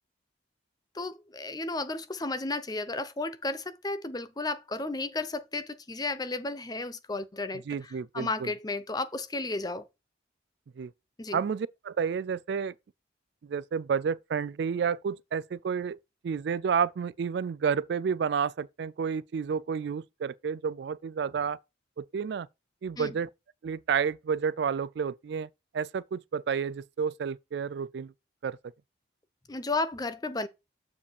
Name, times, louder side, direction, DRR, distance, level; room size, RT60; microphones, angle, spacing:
voice 1, 0.9-7.6 8.1-9.9 11.2-11.4 23.0-23.1 29.5-30.5, left 3 dB, 20° left, 0.6 m, -33 dB
voice 2, 7.7-8.5 10.8-10.9 11.3-12.7 13.4-16.0 16.2-21.6 22.0-22.5 22.8-23.3 23.6-25.5 25.7-28.1 28.4-28.6, right 6 dB, 60° right, 0.3 m, -30 dB
6.9 x 4.9 x 4.4 m
head